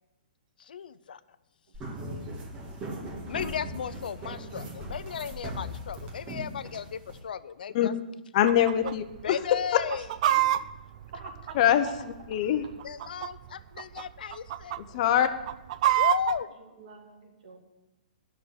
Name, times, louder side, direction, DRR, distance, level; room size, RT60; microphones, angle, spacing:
voice 1, 0.6-1.2 3.3-7.9 8.8-8.9 9.2-10.4 12.8-14.8 16.0-16.5, left 7 dB, 80° left, 15 dB, 0.5 m, -35 dB
sound 1, 1.7-7.2, equal, 25° right, 1.6 m, -39 dB
voice 2, 8.3-9.4 11.6-11.9 12.3-12.7 14.8-15.3, left 11 dB, 50° left, 10 dB, 0.8 m, -23 dB
Chicken rooster, 8.5-8.9 9.2-9.3 9.7-12.0 12.7-13.5 13.8-14.0 14.3-14.8 15.2-16.4, right 14 dB, 50° right, 0.4 m, -26 dB
voice 3, 16.6-17.6, right 4 dB, 65° right, 1 dB, 2.6 m, -46 dB
10.0 x 6.3 x 8.1 m, 1.0 s
hypercardioid pair, 145°, 5 cm